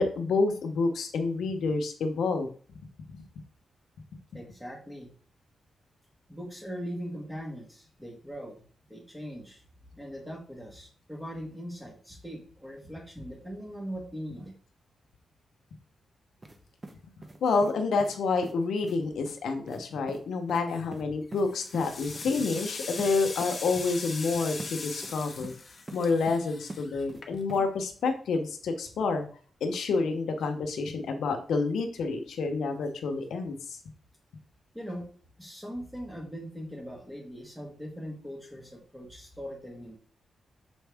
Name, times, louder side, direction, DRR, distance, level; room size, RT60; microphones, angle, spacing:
voice 1, 0.0-2.5 17.4-25.5 25.9-29.3 29.6-33.5, left 4 dB, 85° left, 5 dB, 0.9 m, -28 dB
voice 2, 4.3-5.1 6.3-8.6 8.9-9.6 9.9-14.5 34.7-35.1 35.4-40.0, equal, 5° right, 0 dB, 1.8 m, -40 dB
sound 1, 16.4-16.6 16.8-17.7 18.0-18.2 18.4-18.5 18.8-19.0 19.3-19.4 19.7-19.8 20.1-20.2 20.5-20.6 20.9-21.4 21.7-21.9 22.1-22.3 22.6-22.7 23.0-23.1 23.4-23.5 24.6-24.7 25.0-25.6 25.9-26.4 26.7-27.2 27.5-27.6, right 2 dB, 25° right, 0.8 m, -43 dB
sound 2, 20.5-20.9 21.4-27.7, left 3 dB, 35° left, 1.0 m, -40 dB
6.2 x 4.3 x 3.5 m, 0.43 s
wide cardioid pair, 125°, 0 cm